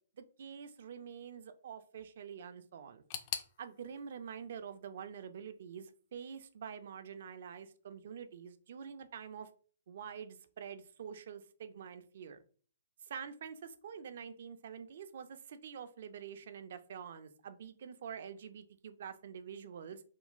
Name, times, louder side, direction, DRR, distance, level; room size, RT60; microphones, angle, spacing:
voice 1, 0.2-3.0 3.6-9.5 9.9-12.4 13.1-20.0, right 7 dB, 60° right, 10 dB, 0.4 m, -47 dB
sound 1, 3.1-6.0 6.2-7.0 7.3-7.4 8.3-8.4, left 9 dB, 40° left, 0.3 m, -46 dB
3.7 x 2.1 x 2.4 m, 0.43 s
hypercardioid pair, 130°, 0 cm